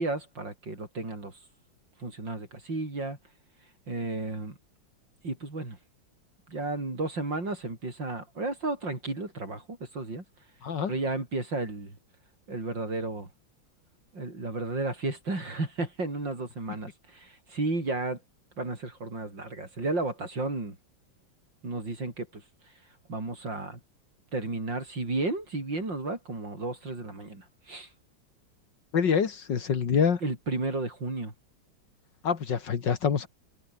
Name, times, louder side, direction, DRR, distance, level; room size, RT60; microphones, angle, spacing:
voice 1, 0.0-1.3 2.0-3.2 3.9-4.6 5.2-5.8 6.5-10.2 10.9-12.0 12.5-13.3 14.1-18.2 18.6-20.8 21.6-22.4 23.1-23.8 24.3-27.9 30.2-31.3, right 2 dB, 60° right, 7.1 m, -33 dB
voice 2, 28.9-30.2 32.2-33.3, left 6 dB, 60° left, 2.4 m, -26 dB
omnidirectional pair, 2.3 m